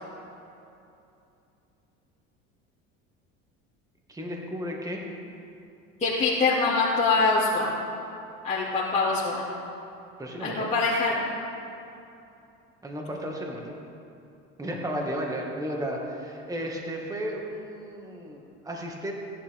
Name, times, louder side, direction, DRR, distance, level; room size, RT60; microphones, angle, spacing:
voice 1, 4.1-5.0 10.2-10.7 12.8-13.8 14.6-19.1, equal, 10° right, -1 dB, 2.0 m, -34 dB
voice 2, 6.0-7.7 8.4-9.4 10.4-11.3, left 3 dB, 20° left, -9 dB, 2.7 m, -24 dB
17.5 x 10.5 x 3.6 m, 2.7 s
supercardioid pair, 105°, 30 cm